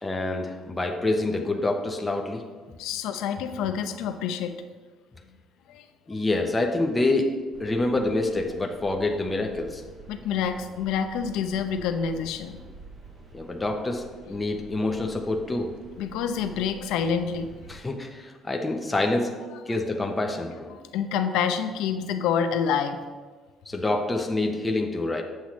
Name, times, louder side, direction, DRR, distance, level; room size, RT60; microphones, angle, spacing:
voice 1, 0.0-2.5 6.1-9.8 13.3-16.0 17.7-20.8 23.7-25.2, left 2 dB, 15° left, 2 dB, 0.6 m, -27 dB
voice 2, 2.8-4.5 5.7-5.9 10.1-12.6 16.0-17.5 20.7-23.0, left 7 dB, 85° left, 8 dB, 0.6 m, -27 dB
sound 1, 7.5-17.8, right 3 dB, 25° right, 0.7 m, -48 dB
8.3 x 7.4 x 3.1 m, 1.4 s
cardioid pair, 135°, 0 cm